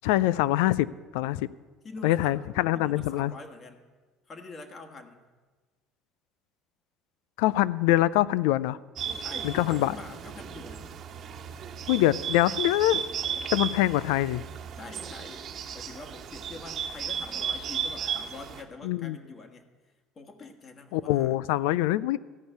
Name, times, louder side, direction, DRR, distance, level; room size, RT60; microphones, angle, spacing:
voice 1, 0.0-0.9 1.1-1.5 2.0-3.3 7.4-8.8 9.4-9.9 11.9-13.1 13.5-14.4 18.8-19.2 20.9-22.2, left 15 dB, 80° left, 19 dB, 0.3 m, -24 dB
voice 2, 1.8-2.5 2.7-3.8 4.3-5.2 9.2-11.0 14.8-21.4, left 3 dB, 40° left, 5 dB, 1.6 m, -45 dB
Bird, 9.0-18.6, right 7 dB, 50° right, 1.5 m, -35 dB
14.0 x 5.4 x 9.0 m, 1.3 s
hypercardioid pair, 70°, 0 cm